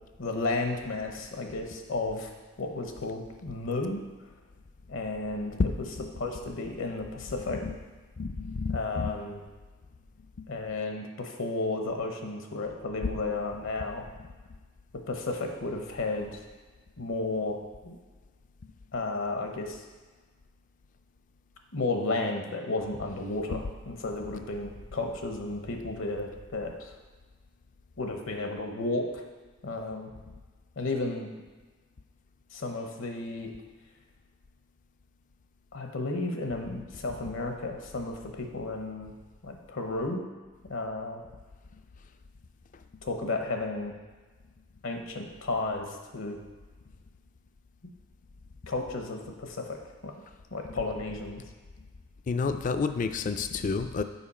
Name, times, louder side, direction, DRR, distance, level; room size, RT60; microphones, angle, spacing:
voice 1, 0.2-2.3 2.6-4.0 4.9-5.6 6.2-7.6 8.7-9.4 10.5-14.0 15.1-16.4 17.0-17.6 17.8-18.0 18.9-19.8 21.7-26.9 28.0-29.2 29.6-30.1 30.8-31.3 32.5-33.5 35.7-39.1 39.4-40.2 40.7-41.2 43.0-43.9 44.8-46.4 48.7-50.1 50.5-51.4, left 2 dB, 70° left, 3 dB, 0.9 m, -33 dB
voice 2, 8.2-9.1 52.3-54.0, left 4 dB, 40° left, 9 dB, 0.3 m, -29 dB
7.1 x 5.2 x 4.2 m, 1.3 s
head